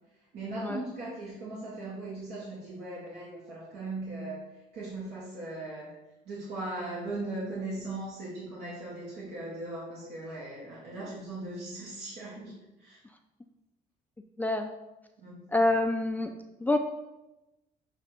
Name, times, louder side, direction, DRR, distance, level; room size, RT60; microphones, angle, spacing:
voice 1, 0.3-4.5 4.7-5.9 6.3-13.0 15.2-15.5, right 2 dB, 75° right, -8 dB, 2.1 m, -38 dB
voice 2, 14.4-14.7 15.5-16.3 16.6-16.8, left 2 dB, 10° left, 4 dB, 0.4 m, -26 dB
7.2 x 3.3 x 5.6 m, 0.98 s
cardioid pair, 110°, 17 cm